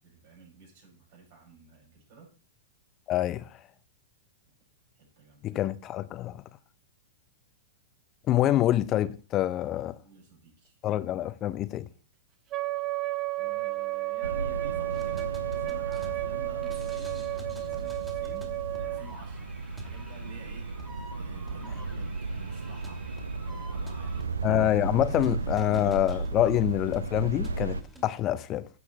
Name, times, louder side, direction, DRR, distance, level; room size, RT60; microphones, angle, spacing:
voice 1, 0.0-2.3 4.9-5.6 10.0-10.8 13.4-20.7 21.1-23.1 23.4-24.3 24.9-26.4, right 4 dB, 55° right, 5.8 m, -51 dB
voice 2, 3.1-3.6 5.4-6.4 8.3-10.0 10.8-11.9 24.4-28.7, left 13 dB, 35° left, 0.5 m, -26 dB
Wind instrument woodwind instrument, 12.5-19.1, right 19 dB, 35° right, 0.4 m, -32 dB
sound 1, 14.2-27.8, right 3 dB, 90° right, 0.5 m, -35 dB
sound 2, 14.9-28.0, left 1 dB, 10° right, 2.1 m, -48 dB
15.0 x 5.7 x 3.2 m
hypercardioid pair, 110°, 0 cm